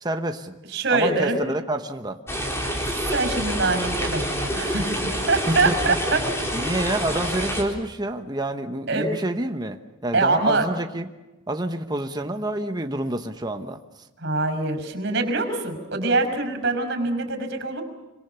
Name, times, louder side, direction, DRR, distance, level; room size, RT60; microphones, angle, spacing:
voice 1, 0.0-0.5 0.9-2.2 5.5-6.0 6.5-11.1 11.5-13.8, right 1 dB, 20° right, 6 dB, 1.1 m, -28 dB
voice 2, 0.7-1.4 2.9-6.2 8.9-9.1 10.1-10.7 14.2-17.8, right 3 dB, 60° right, 7 dB, 5.7 m, -24 dB
sound 1, 2.3-7.6, equal, 15° left, 4.2 m, -27 dB
26.0 x 25.0 x 7.0 m, 1.1 s
head